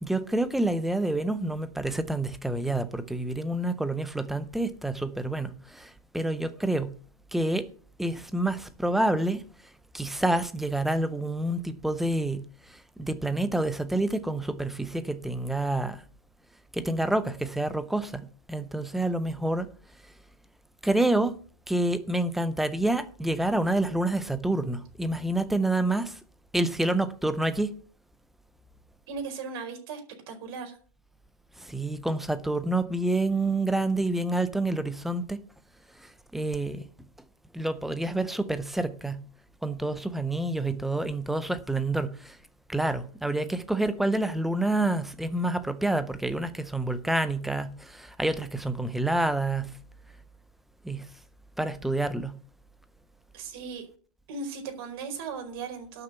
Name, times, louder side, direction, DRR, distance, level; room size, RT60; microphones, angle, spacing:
voice 1, 0.0-6.9 7.3-7.7 8.0-9.4 9.9-12.4 13.0-16.0 16.7-19.7 20.8-21.4 21.7-26.2 26.5-27.8 31.6-35.4 36.3-36.8 37.5-39.2 39.6-42.4 42.7-49.7 50.8-51.0 51.6-52.3, right 2 dB, ahead, 0.5 m, -28 dB
voice 2, 29.1-30.0 30.3-30.8 53.3-53.8 54.3-56.0, right 5 dB, 40° right, 4.7 m, -37 dB
12.0 x 6.9 x 8.1 m
hypercardioid pair, 165°, 19 cm